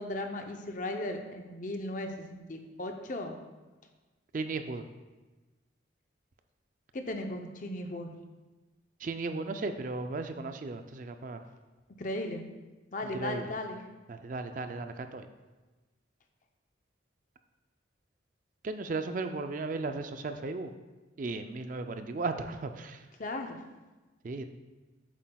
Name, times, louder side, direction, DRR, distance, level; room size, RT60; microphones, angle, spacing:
voice 1, 0.0-3.3 6.9-8.1 12.0-12.4 12.9-13.8 23.2-23.6, left 1 dB, 45° left, 5 dB, 0.6 m, -36 dB
voice 2, 4.3-4.8 9.0-11.4 13.1-13.4 14.1-15.3 18.6-20.7 21.2-23.0 24.2-24.4, right 3 dB, 45° right, 8 dB, 0.4 m, -35 dB
8.2 x 7.5 x 2.3 m, 1.2 s
head